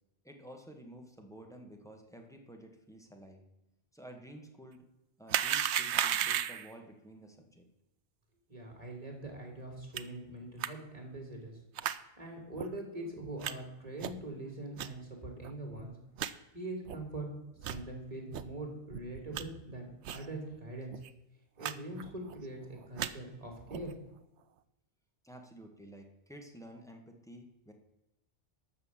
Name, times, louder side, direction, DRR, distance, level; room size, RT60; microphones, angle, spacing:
voice 1, 0.2-3.4 3.9-4.8 5.2-7.6 25.2-27.7, right 1 dB, 5° left, 2 dB, 1.6 m, -51 dB
sound 1, 5.3-6.7 10.0-10.1 10.6-10.7 11.8-12.0 12.6-12.7 13.4-13.5 14.0-14.3 14.8-14.9 15.4-15.5 15.8-15.9 16.2-16.3 16.9-17.0 17.6-17.8 18.3-18.4 18.9-19.4 20.0-20.3 20.5-20.6 20.9-21.1 21.6-21.7 22.0-22.4 22.8-23.1 23.7-23.9, right 10 dB, 75° right, 0.9 m, -34 dB
voice 2, 8.5-11.6 12.2-15.9 16.5-17.3 17.6-21.0 21.6-23.9, right 2 dB, 30° right, 2 dB, 3.2 m, -43 dB
12.5 x 6.5 x 7.4 m, 0.95 s
omnidirectional pair, 1.2 m